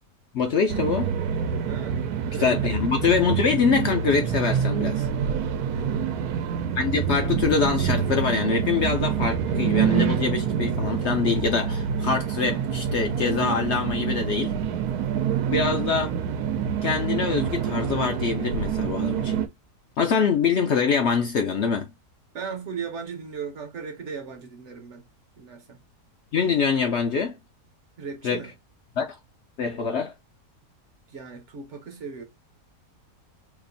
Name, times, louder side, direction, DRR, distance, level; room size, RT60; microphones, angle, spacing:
voice 1, 0.3-1.1 2.4-5.1 6.8-14.5 15.5-16.1 16.8-19.4 20.0-21.9 26.3-27.4 28.2-28.4 29.0-29.2 29.6-30.1, left 5 dB, 60° left, 0.8 m, -24 dB
sound 1, 0.7-19.5, right 8 dB, 80° right, 1.1 m, -26 dB
voice 2, 1.6-2.0 2.3-2.7 5.7-6.2 15.1-15.5 22.3-25.1 25.4-25.8 28.0-28.5 31.1-32.2, right 6 dB, 55° right, 1.1 m, -37 dB
3.0 x 2.4 x 3.8 m
omnidirectional pair, 1.6 m